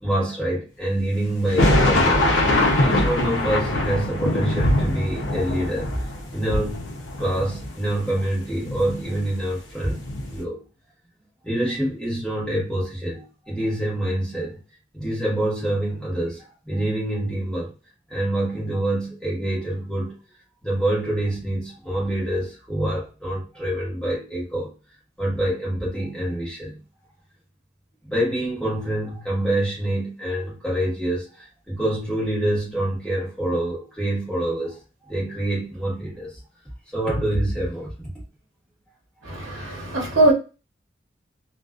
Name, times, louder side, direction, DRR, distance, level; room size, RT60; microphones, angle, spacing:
voice 1, 0.0-2.3 2.8-6.8 7.2-10.0 10.3-10.6 11.4-14.6 14.9-17.7 18.1-20.1 20.6-24.7 25.2-26.8 28.1-34.8 35.1-36.3 36.9-37.9, right 1 dB, 5° left, 1.0 m, -26 dB
sound 1, 1.5-8.2 8.6-9.4 9.8-10.4, left 1 dB, 70° left, 0.6 m, -22 dB
voice 2, 39.2-40.3, right 2 dB, 85° right, 0.9 m, -21 dB
2.5 x 2.2 x 2.3 m
head